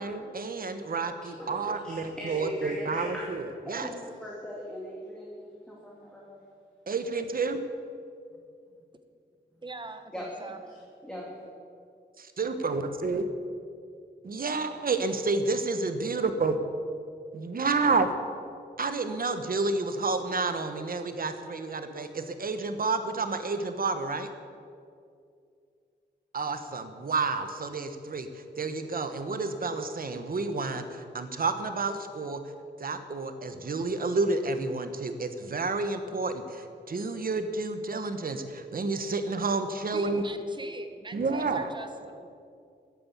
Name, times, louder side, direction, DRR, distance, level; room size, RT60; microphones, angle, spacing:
voice 1, 0.0-3.9 6.9-7.6 12.2-13.3 14.2-16.6 17.3-18.1 18.8-24.3 26.3-32.4 32.8-40.2 41.1-41.7, right 3 dB, 55° right, 8 dB, 1.2 m, -30 dB
voice 2, 1.4-3.3 3.8-6.4 10.1-10.2 11.0-11.2, equal, 5° left, -4 dB, 2.4 m, -39 dB
voice 3, 9.6-10.6 39.9-42.3, right 3 dB, 25° right, 8 dB, 1.1 m, -43 dB
14.5 x 9.9 x 8.3 m, 2.4 s
wide cardioid pair, 150°, 18 cm